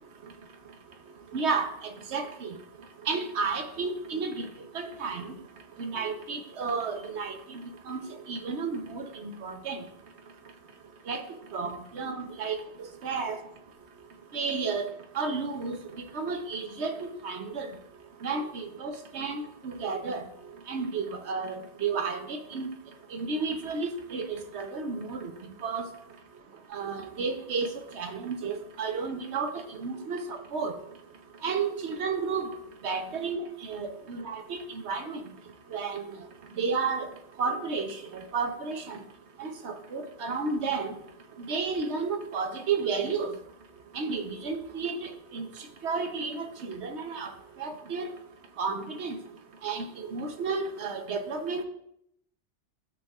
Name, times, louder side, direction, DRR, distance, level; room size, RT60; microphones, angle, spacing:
voice 1, 1.3-2.6 3.1-4.5 4.7-5.3 5.8-8.0 8.3-9.8 11.1-11.2 11.5-13.4 14.3-14.9 15.1-15.8 16.1-17.7 18.2-20.2 20.7-22.7 23.1-25.3 25.6-25.9 26.7-27.7 27.9-30.8 31.4-32.5 32.8-35.2 35.7-36.0 36.6-37.1 37.4-38.0 38.3-39.0 39.4-40.9 41.5-43.3 43.9-45.5 45.8-47.3 47.6-48.1 48.6-49.1 49.6-51.6, right 4 dB, 70° right, 6 dB, 1.1 m, -32 dB
13.5 x 4.7 x 2.4 m, 0.75 s
omnidirectional pair, 1.2 m